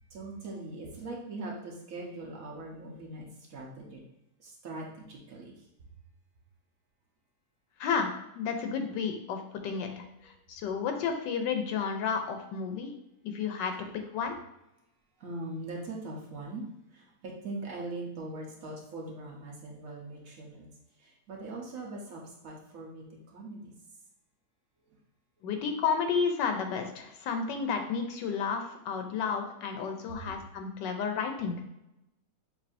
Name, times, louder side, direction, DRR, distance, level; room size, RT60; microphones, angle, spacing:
voice 1, 0.1-4.0 4.4-5.6 13.7-13.8 15.2-16.6 16.9-20.7 21.0-23.7 25.4-25.5 30.1-30.4, right 2 dB, 55° right, -2 dB, 1.3 m, -41 dB
voice 2, 7.8-12.9 13.2-14.4 25.4-31.6, left 6 dB, 85° left, 5 dB, 1.3 m, -32 dB
6.6 x 2.7 x 2.6 m, 0.87 s
omnidirectional pair, 1.9 m